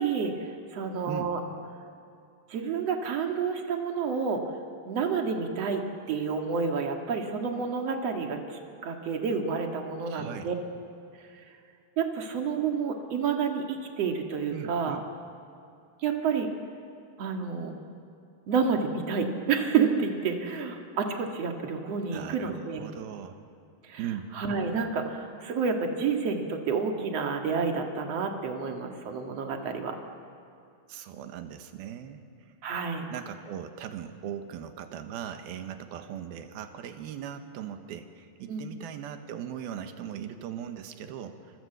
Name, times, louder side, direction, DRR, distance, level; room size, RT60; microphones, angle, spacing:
voice 1, 0.0-1.4 2.5-4.4 4.9-10.5 12.0-15.0 16.0-16.5 17.2-17.7 18.5-22.8 23.8-24.0 24.4-30.0 32.6-33.1 38.5-38.7, right 5 dB, 45° right, 3 dB, 2.5 m, -29 dB
voice 2, 10.0-10.5 14.5-15.0 22.1-23.4 24.0-24.3 30.9-32.2 33.1-41.4, right 9 dB, 75° right, 7 dB, 3.1 m, -39 dB
28.0 x 25.0 x 8.0 m, 2.5 s
omnidirectional pair, 4.7 m